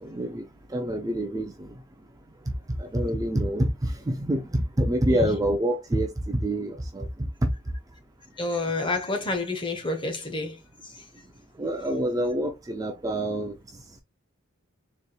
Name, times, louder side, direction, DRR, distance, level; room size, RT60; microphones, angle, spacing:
voice 1, 0.0-0.4 0.7-1.7 2.8-7.1 7.4-7.5 11.6-13.5, right 1 dB, 15° right, 0.4 m, -26 dB
voice 2, 8.4-11.0, left 2 dB, 25° left, 0.8 m, -29 dB
4.1 x 3.2 x 2.2 m
head